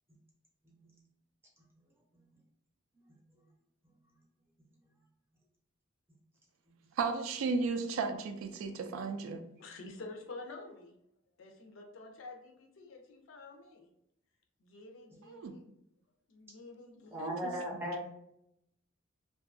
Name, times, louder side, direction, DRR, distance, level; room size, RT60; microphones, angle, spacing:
voice 1, 7.0-9.4 15.3-15.5 17.2-17.9, right 4 dB, 80° right, 6 dB, 0.3 m, -35 dB
voice 2, 9.6-11.0 11.4-13.9 14.6-15.7 16.3-17.4, left 3 dB, 70° left, 3 dB, 0.5 m, -49 dB
voice 3, 17.1-18.1, equal, 10° right, -2 dB, 0.6 m, -36 dB
2.6 x 2.3 x 2.4 m, 0.81 s
head